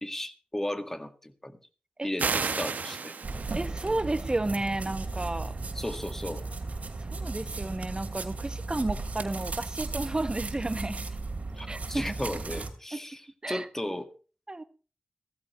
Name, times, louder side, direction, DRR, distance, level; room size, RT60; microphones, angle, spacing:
voice 1, 0.0-1.6 2.0-3.2 5.8-6.4 11.6-13.2 13.5-14.1, left 1 dB, 15° left, 1.8 m, -35 dB
sound 1, 2.2-3.8, right 5 dB, 80° right, 0.9 m, -31 dB
sound 2, 3.2-12.7, right 3 dB, 60° right, 2.7 m, -36 dB
voice 2, 3.5-5.5 7.1-11.0 11.7-12.1 12.9-13.0 13.4-13.7 14.5-14.6, right 2 dB, 30° right, 1.3 m, -32 dB
16.5 x 15.0 x 3.2 m
wide cardioid pair, 65°, 3 cm